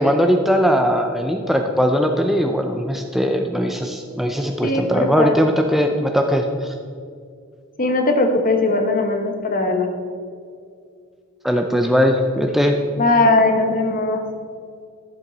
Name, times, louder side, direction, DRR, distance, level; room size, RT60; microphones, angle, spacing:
voice 1, 0.0-6.7 11.4-12.8, equal, ahead, 3 dB, 0.5 m, -19 dB
voice 2, 4.6-5.4 7.8-9.9 13.0-14.2, left 2 dB, 40° left, 4 dB, 1.1 m, -19 dB
12.0 x 7.5 x 4.0 m, 2.2 s
head